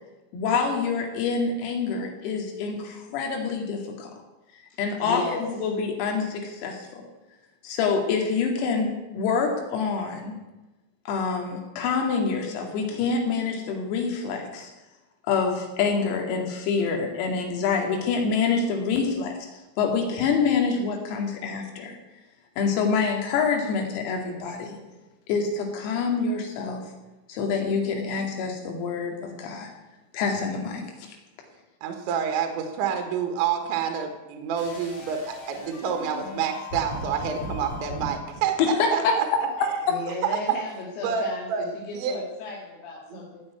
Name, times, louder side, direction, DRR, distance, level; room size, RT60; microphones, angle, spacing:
voice 1, 0.3-4.1 4.8-7.0 7.6-10.4 11.1-14.7 15.3-19.4 19.8-22.0 22.6-24.8 25.3-26.8 27.3-29.7 30.1-31.2 38.6-39.1, left 5 dB, 90° left, 2 dB, 5.1 m, -26 dB
voice 2, 5.0-5.4 39.9-43.4, left 4 dB, 60° left, -3 dB, 3.5 m, -35 dB
voice 3, 31.8-39.3 40.2-40.4 41.0-41.7 41.9-42.2 43.1-43.2, right 7 dB, 70° right, 5 dB, 3.5 m, -28 dB
sound 1, 34.6-38.1, left 1 dB, 40° left, 4.6 m, -37 dB
16.5 x 7.2 x 9.2 m, 1.0 s
omnidirectional pair, 6.0 m